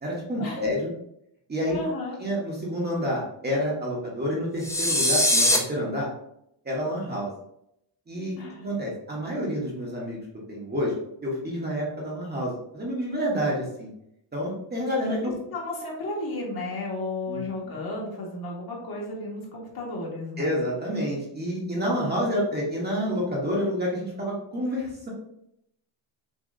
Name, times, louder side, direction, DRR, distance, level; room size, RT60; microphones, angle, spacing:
voice 1, 0.0-0.9 1.5-1.8 2.2-6.1 6.6-7.3 8.1-8.3 8.6-10.2 10.5-10.9 11.2-13.9 14.3-15.3 17.3-17.8 20.4-25.1, equal, 20° right, -3 dB, 1.2 m, -28 dB
voice 2, 1.7-2.2 8.4-8.6 15.5-20.6, left 2 dB, 50° left, -4 dB, 1.8 m, -33 dB
sound 1, 4.6-5.6, left 1 dB, 5° left, 0.6 m, -21 dB
6.2 x 3.1 x 2.7 m, 0.77 s
cardioid pair, 140°, 46 cm